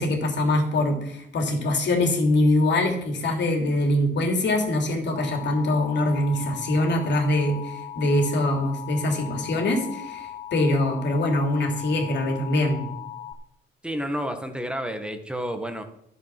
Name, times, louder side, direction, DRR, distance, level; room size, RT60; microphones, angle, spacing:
voice 1, 0.0-12.9, left 1 dB, 65° left, 3 dB, 3.2 m, -23 dB
Alarm, 5.1-13.3, left 10 dB, 35° left, 1.4 m, -39 dB
voice 2, 13.8-15.8, equal, 5° right, 6 dB, 1.7 m, -30 dB
12.0 x 7.9 x 6.1 m, 0.75 s
cardioid pair, 90°, 20 cm